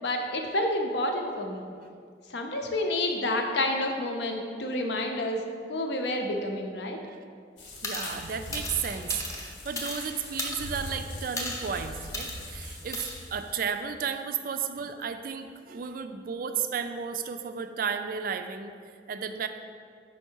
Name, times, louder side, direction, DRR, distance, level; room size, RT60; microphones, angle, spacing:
voice 1, 0.0-1.6 2.3-5.4 5.7-7.0, left 1 dB, 70° left, 3 dB, 0.7 m, -29 dB
sound 1, 7.6-13.6, left 1 dB, 90° left, 1.2 m, -41 dB
sound 2, 7.8-8.2 8.5-10.0 10.4-10.9 11.4-11.7 12.1-12.4 12.9-13.1, left 2 dB, 15° left, 0.6 m, -35 dB
voice 2, 7.8-19.5, right 6 dB, 50° right, 8 dB, 0.3 m, -33 dB
5.5 x 4.6 x 4.5 m, 2.1 s
head